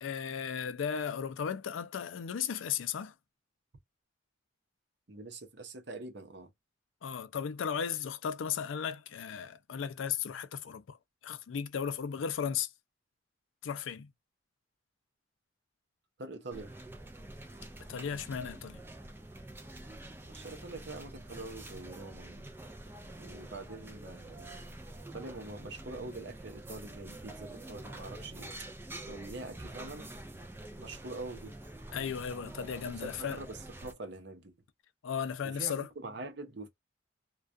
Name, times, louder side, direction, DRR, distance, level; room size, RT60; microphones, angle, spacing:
voice 1, 0.0-3.1 7.0-11.0 11.2-12.7 13.6-14.1 17.9-18.8 31.9-33.4 35.0-35.9, left 7 dB, 80° left, 0.4 m, -35 dB
voice 2, 5.1-6.5 16.2-16.7 20.2-22.7 23.0-24.5 25.1-28.5 29.1-30.1 30.8-31.6 32.4-32.5 32.8-34.5 35.4-36.7, right 2 dB, 60° right, 0.7 m, -44 dB
sound 1, 16.5-33.9, right 1 dB, 10° right, 0.4 m, -47 dB
2.3 x 2.3 x 2.4 m
head